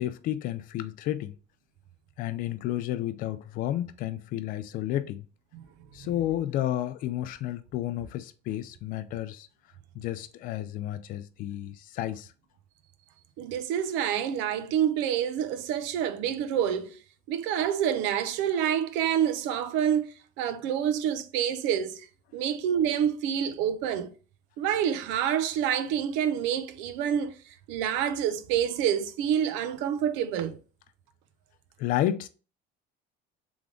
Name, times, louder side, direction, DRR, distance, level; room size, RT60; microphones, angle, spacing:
voice 1, 0.0-1.3 2.2-5.3 5.9-9.5 9.9-12.3 31.8-32.3, left 13 dB, 45° left, 0.4 m, -31 dB
voice 2, 13.4-17.0 17.3-22.1 22.3-24.1 24.6-30.6, right 9 dB, 75° right, 0.6 m, -27 dB
3.6 x 3.5 x 3.5 m
cardioid pair, 175°, 19 cm